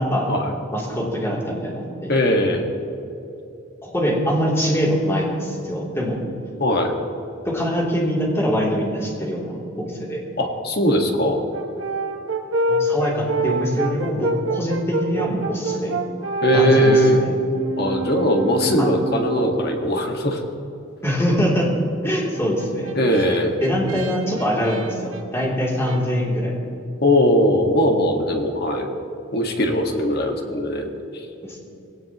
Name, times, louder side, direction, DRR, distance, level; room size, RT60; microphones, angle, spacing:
voice 1, 0.0-0.3 0.7-2.4 3.8-6.2 7.4-10.2 12.7-15.9 16.5-17.3 18.8-18.9 21.0-21.7 22.0-22.9 23.6-26.5 31.4-31.6, equal, 15° left, -4 dB, 3.0 m, -23 dB
voice 2, 2.1-2.7 6.6-6.9 10.4-11.4 16.4-17.3 17.8-20.4 22.9-23.6 27.0-28.9 29.3-31.2, equal, 50° left, 2 dB, 1.7 m, -20 dB
Brass instrument, 11.5-19.8 22.3-26.0, right 2 dB, 75° right, 0.9 m, -27 dB
20.5 x 17.5 x 3.0 m, 2.8 s
head